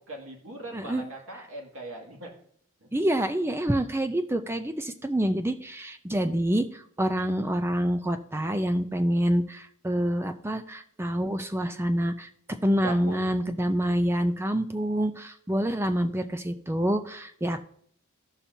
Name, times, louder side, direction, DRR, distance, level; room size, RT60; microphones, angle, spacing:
voice 1, 0.0-2.3 2.8-2.9 12.8-13.2, right 2 dB, 60° right, 0 dB, 2.2 m, -39 dB
voice 2, 0.7-1.0 2.9-12.3 12.6-17.7, equal, 10° right, 8 dB, 0.5 m, -27 dB
15.5 x 5.7 x 2.8 m, 0.62 s
head